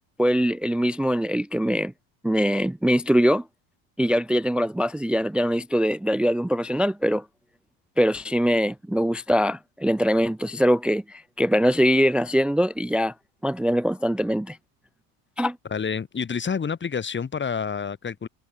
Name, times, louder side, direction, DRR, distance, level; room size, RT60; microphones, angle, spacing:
voice 1, 0.2-1.9 2.2-3.4 4.0-7.2 8.0-13.1 13.4-14.6 15.4-15.6, equal, ahead, 0.5 m, -22 dB
voice 2, 15.7-18.3, left 6 dB, 25° left, 5.2 m, -28 dB
supercardioid pair, 110°, 43 cm